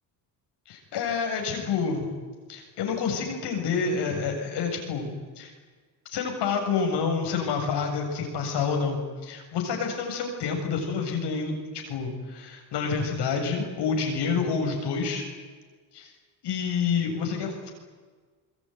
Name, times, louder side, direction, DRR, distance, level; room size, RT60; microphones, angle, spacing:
voice 1, 0.7-2.1 2.5-5.1 5.4-5.5 6.1-11.5 11.9-15.2 15.9-16.1 16.4-17.7, left 5 dB, 65° left, 3 dB, 7.7 m, -28 dB
26.5 x 22.0 x 9.6 m, 1.5 s
cardioid pair, 100°, 44 cm